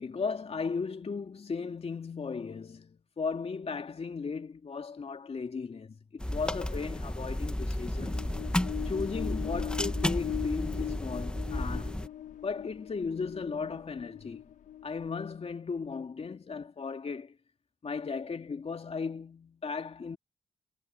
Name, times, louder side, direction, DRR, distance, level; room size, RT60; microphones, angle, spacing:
voice 1, 0.0-8.2 8.8-11.9 12.4-14.4 14.8-17.4 17.8-20.2, left 5 dB, 50° left, 2.8 m, -36 dB
sound 1, 6.2-12.1, left 1 dB, 5° left, 1.4 m, -33 dB
sound 2, 7.9-15.5, left 11 dB, 70° left, 1.6 m, -41 dB
supercardioid pair, 45°, 14 cm